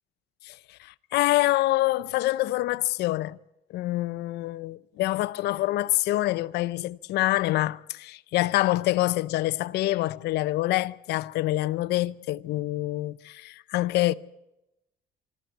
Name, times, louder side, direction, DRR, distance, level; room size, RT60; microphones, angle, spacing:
voice 1, 0.4-3.4 3.7-14.1, left 17 dB, 80° left, 0.7 m, -26 dB
24.5 x 13.5 x 9.2 m
cardioid pair, 110°, 17 cm